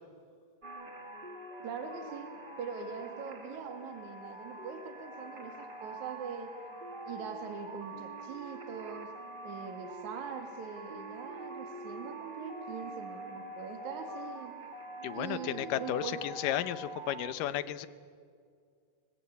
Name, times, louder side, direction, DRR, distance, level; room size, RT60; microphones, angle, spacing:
sound 1, 0.6-17.3, right 2 dB, 30° right, 0.8 m, -45 dB
voice 1, 1.6-2.3 2.6-6.6 7.0-9.1 9.4-14.6 15.1-16.2, right 6 dB, 65° right, 5 dB, 3.5 m, -42 dB
voice 2, 15.0-17.9, left 12 dB, 80° left, 14 dB, 2.5 m, -33 dB
27.0 x 22.0 x 8.4 m, 2.2 s
omnidirectional pair, 3.8 m